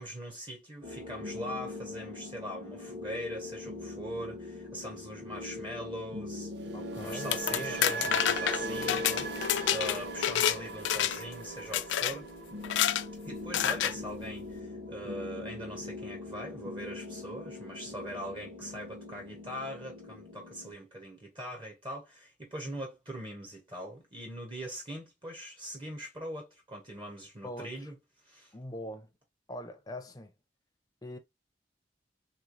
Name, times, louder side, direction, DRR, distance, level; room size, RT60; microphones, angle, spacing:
voice 1, 0.0-6.5 7.0-9.1 9.7-12.3 13.2-28.0 28.2-28.5, equal, 25° right, 0.8 m, -41 dB
sound 1, 0.8-20.7, left 2 dB, 45° right, 1.1 m, -42 dB
sound 2, 6.5-14.6 14.9-15.2, right 5 dB, 65° right, 0.4 m, -42 dB
voice 2, 6.7-8.1 9.1-9.3 27.4-27.9 28.5-29.1 29.5-30.3 31.0-31.2, left 1 dB, 20° left, 0.5 m, -42 dB
sound 3, 7.1-10.6 10.9-11.3 11.7-12.1 12.6-13.0 13.5-13.9, left 11 dB, 80° left, 0.3 m, -28 dB
3.2 x 3.1 x 2.5 m
head